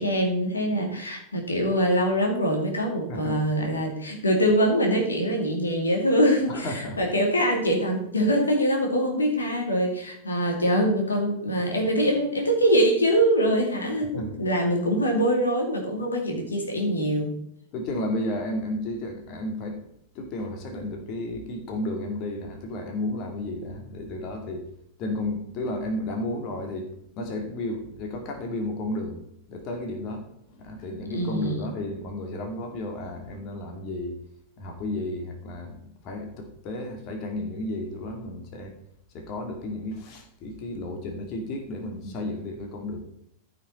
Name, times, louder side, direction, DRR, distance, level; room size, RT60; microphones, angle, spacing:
voice 1, 0.0-17.3 31.1-31.6, equal, 75° left, 2 dB, 2.4 m, -24 dB
voice 2, 3.1-3.4 6.5-7.0 14.1-14.3 17.7-19.9 20.1-24.6 25.0-26.9 27.2-29.2 29.5-34.2 34.6-38.7 39.1-43.0, left 1 dB, 40° left, 3 dB, 2.2 m, -33 dB
14.5 x 5.9 x 4.3 m, 0.72 s
figure-of-eight pair, 90°, 0 cm